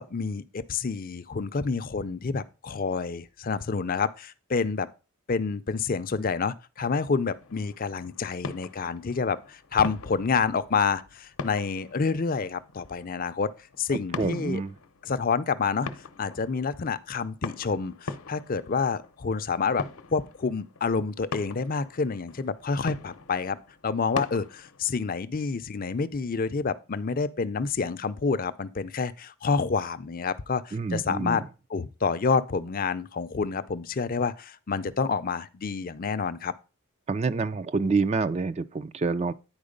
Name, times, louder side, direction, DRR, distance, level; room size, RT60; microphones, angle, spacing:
voice 1, 0.0-4.9 5.3-13.5 13.8-14.6 15.0-15.9 16.2-19.8 20.1-23.6 23.8-31.4 31.7-36.5, left 5 dB, 40° left, 0.5 m, -28 dB
sound 1, 7.3-24.8, left 4 dB, 80° left, 0.8 m, -42 dB
voice 2, 14.2-14.7 30.7-31.5 37.1-39.3, right 4 dB, 30° right, 0.4 m, -27 dB
9.6 x 4.6 x 5.1 m
head